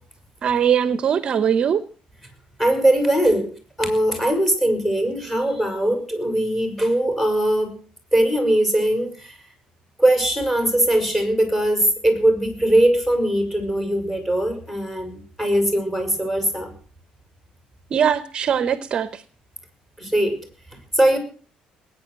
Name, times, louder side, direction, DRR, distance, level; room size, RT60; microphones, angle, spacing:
voice 1, 0.4-1.8 17.9-19.2, right 8 dB, 35° right, 0.9 m, -21 dB
voice 2, 2.6-3.5 3.8-7.7 8.1-9.4 10.0-16.7 20.0-20.4 21.0-21.2, right 1 dB, 5° left, 5.4 m, -20 dB
20.0 x 9.7 x 7.5 m
cardioid pair, 150°, 3 cm